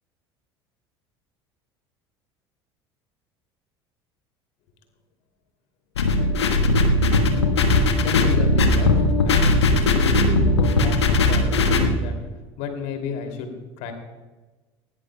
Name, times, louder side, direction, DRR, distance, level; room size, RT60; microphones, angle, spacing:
sound 1, 6.0-11.9, left 2 dB, 75° left, 1.3 m, -19 dB
voice 1, 8.0-8.9 9.2-12.2 12.6-13.9, left 5 dB, 55° left, 5 dB, 2.6 m, -33 dB
20.0 x 16.5 x 2.2 m, 1.2 s
figure-of-eight pair, 65°, 14 cm